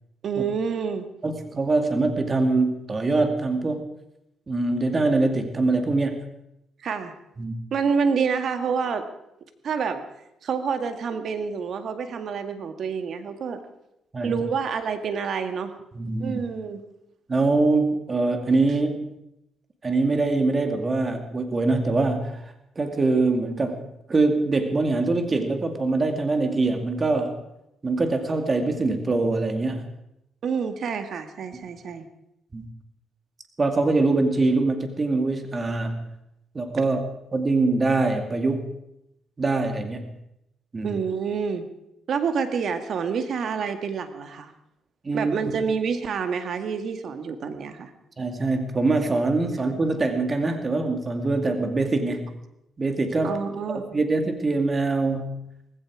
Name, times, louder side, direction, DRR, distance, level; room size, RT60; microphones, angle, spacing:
voice 1, 0.2-1.1 6.8-7.1 7.7-9.1 9.6-10.0 10.4-13.6 14.2-15.7 16.2-16.8 30.4-32.1 40.8-41.7 42.1-44.5 45.1-47.9 53.2-53.8, right 6 dB, 60° right, 8 dB, 1.9 m, -27 dB
voice 2, 1.2-3.8 4.5-6.2 7.4-7.6 14.1-14.4 15.9-16.4 17.3-19.1 19.8-27.4 27.8-29.9 32.5-32.7 33.6-36.1 36.5-37.0 37.3-38.7 39.4-40.1 40.7-41.0 45.0-45.6 48.2-52.3 52.8-53.4 53.7-55.3, right 3 dB, 30° right, 5 dB, 2.2 m, -23 dB
18.5 x 16.0 x 4.8 m, 0.84 s
cardioid pair, 90°, 0 cm